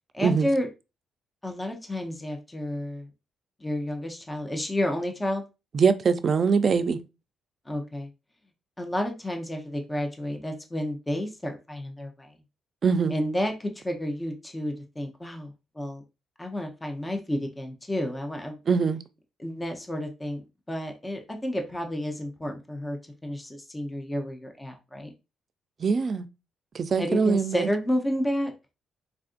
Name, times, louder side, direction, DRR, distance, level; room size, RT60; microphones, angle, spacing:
voice 1, 0.1-0.7 1.4-3.1 3.6-5.4 7.7-8.1 8.8-12.3 13.1-16.0 16.4-18.6 19.4-20.4 20.7-25.1 27.0-28.5, left 1 dB, 15° left, 0.6 m, -31 dB
voice 2, 5.7-7.0 12.8-13.1 18.7-19.0 25.8-26.3 26.7-27.7, right 5 dB, 45° right, 0.4 m, -23 dB
3.5 x 2.5 x 2.4 m
cardioid pair, 90°, 0 cm